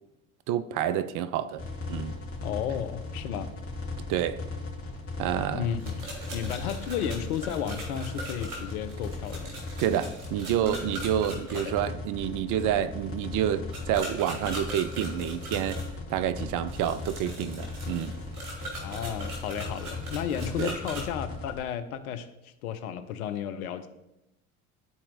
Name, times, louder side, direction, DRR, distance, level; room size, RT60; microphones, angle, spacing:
voice 1, 0.5-1.6 1.9-2.2 4.1-4.4 5.2-5.7 9.8-15.8 16.1-18.1 20.6-20.8, right 10 dB, 45° right, 0.5 m, -28 dB
sound 1, 1.6-21.6, left 3 dB, 30° left, 1.8 m, -37 dB
voice 2, 2.4-3.5 5.5-9.7 11.5-11.7 18.8-23.9, left 9 dB, 75° left, 0.7 m, -33 dB
sound 2, 5.8-11.6 13.7-15.9 16.7-21.0, right 1 dB, 75° right, 1.9 m, -40 dB
12.0 x 4.2 x 2.6 m
hypercardioid pair, 65°, 44 cm